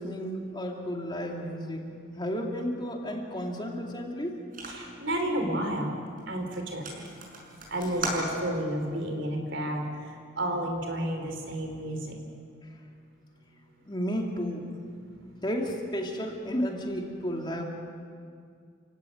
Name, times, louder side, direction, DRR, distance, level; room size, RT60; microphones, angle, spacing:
voice 1, 0.0-1.8 2.2-4.3 13.9-14.8 15.4-17.6, equal, 25° left, 1 dB, 2.6 m, -32 dB
sound 1, 4.5-5.0 5.6-5.9 6.2-6.3 6.5-8.8, right 2 dB, 45° right, 6.2 m, -37 dB
voice 2, 4.7-6.0 6.3-7.0 7.7-9.9 10.4-12.2, right 1 dB, 65° right, 4 dB, 4.4 m, -31 dB
29.0 x 16.5 x 9.4 m, 2.2 s
head